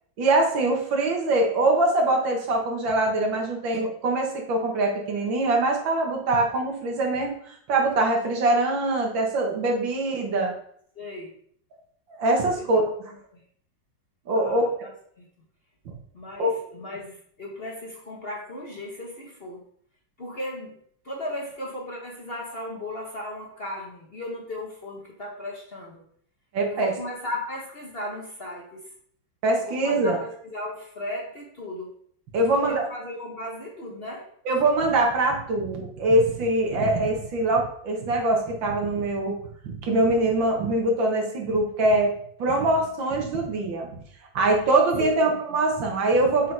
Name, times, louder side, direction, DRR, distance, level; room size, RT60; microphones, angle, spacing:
voice 1, 0.2-10.5 12.2-12.9 14.3-14.7 15.9-16.0 16.4-16.5 26.5-26.9 29.4-30.2 32.3-32.8 34.5-39.3 39.6-42.1 42.4-44.0 44.3-46.5, right 2 dB, 80° right, 1 dB, 2.1 m, -23 dB
voice 2, 10.9-11.3 12.5-12.6 13.1-13.4 14.3-15.3 16.1-19.6 20.2-20.8 21.0-26.0 26.7-28.8 29.6-31.9 32.5-34.3 45.0-45.3, left 1 dB, 40° left, -1 dB, 1.1 m, -36 dB
7.1 x 4.0 x 4.6 m, 0.64 s
omnidirectional pair, 2.1 m